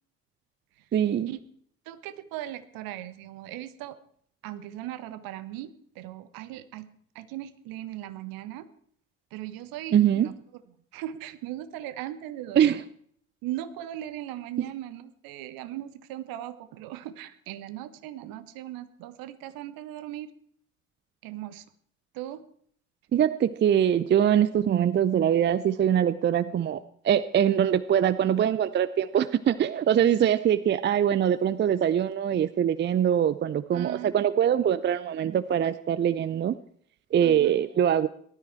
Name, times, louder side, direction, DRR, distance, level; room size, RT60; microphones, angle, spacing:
voice 1, 0.9-1.3 9.9-10.3 12.6-12.8 23.1-36.6 37.1-38.1, right 9 dB, 25° right, 16 dB, 0.6 m, -23 dB
voice 2, 1.8-4.0 4.4-6.9 7.1-8.7 9.3-10.3 10.9-12.8 13.4-20.3 21.2-21.6 22.1-22.4 30.2-30.4 33.7-34.1 37.2-37.5, right 13 dB, 55° right, 13 dB, 1.4 m, -38 dB
18.5 x 13.0 x 4.5 m, 0.62 s
figure-of-eight pair, 60°, 42 cm